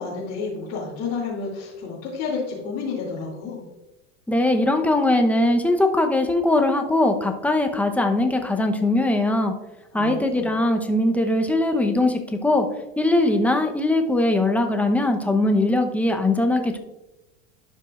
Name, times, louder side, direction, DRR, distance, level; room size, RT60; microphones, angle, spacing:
voice 1, 0.0-3.6 9.9-10.5, left 4 dB, 60° left, -8 dB, 2.5 m, -30 dB
voice 2, 4.3-9.5 9.9-12.1 12.4-12.7 13.0-16.8, left 2 dB, 5° left, 4 dB, 0.8 m, -20 dB
12.0 x 5.5 x 2.4 m, 0.97 s
supercardioid pair, 110°, 36 cm